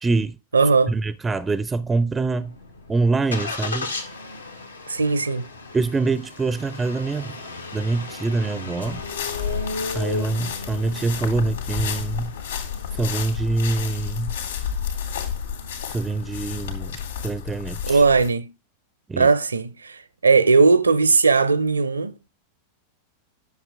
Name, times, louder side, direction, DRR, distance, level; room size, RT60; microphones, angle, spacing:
voice 1, 0.0-0.4 0.9-2.5 2.9-3.9 5.7-7.4 7.7-9.0 9.9-12.3 13.0-14.3 15.9-16.9 17.2-18.0 19.1-19.3, right 3 dB, 15° right, 0.4 m, -24 dB
voice 2, 0.5-0.9 4.9-5.5 17.8-18.5 19.2-22.3, right 4 dB, 75° right, 0.7 m, -18 dB
Engine starting, 2.1-17.4, left 3 dB, 80° left, 1.6 m, -36 dB
sound 1, 8.8-18.3, left 8 dB, 65° left, 2.7 m, -31 dB
10.5 x 6.8 x 3.5 m
figure-of-eight pair, 90°, 0 cm